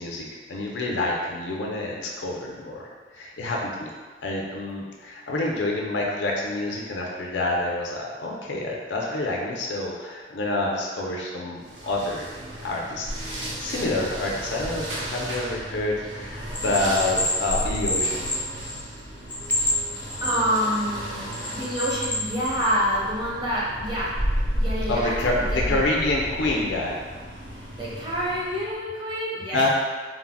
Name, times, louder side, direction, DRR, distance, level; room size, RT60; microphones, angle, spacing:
voice 1, 0.0-3.9 4.2-12.3 12.6-13.1 13.6-18.3 24.9-27.0 29.5-29.7, left 2 dB, 90° left, -2 dB, 0.5 m, -27 dB
sound 1, 11.6-28.8, equal, 80° right, 0.6 m, -33 dB
Bell, 16.5-18.9 19.3-20.8 21.3-22.7, left 1 dB, 10° left, 0.4 m, -27 dB
voice 2, 20.2-24.1 24.5-25.8 27.7-29.7, equal, 25° right, -7 dB, 0.7 m, -27 dB
3.7 x 2.0 x 2.2 m, 1.5 s
head